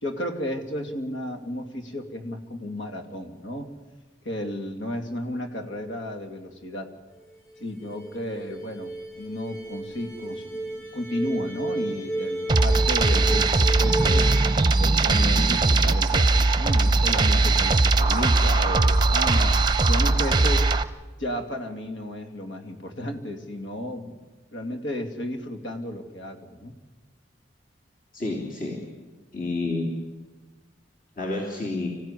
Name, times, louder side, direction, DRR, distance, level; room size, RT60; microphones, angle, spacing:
voice 1, 0.0-3.7 4.2-6.9 7.6-14.3 14.8-19.5 19.9-20.7 21.2-24.2 24.5-26.7, left 1 dB, 75° left, 5 dB, 2.6 m, -33 dB
sound 1, 7.2-7.3 7.5-7.6 7.8-14.5, right 1 dB, 15° left, 5.9 m, -32 dB
sound 2, 12.5-20.8, right 3 dB, 25° right, 0.7 m, -20 dB
voice 2, 28.1-28.8 29.3-29.9 31.2-31.9, left 2 dB, 45° left, -2 dB, 3.2 m, -29 dB
26.0 x 15.5 x 10.0 m, 1.2 s
head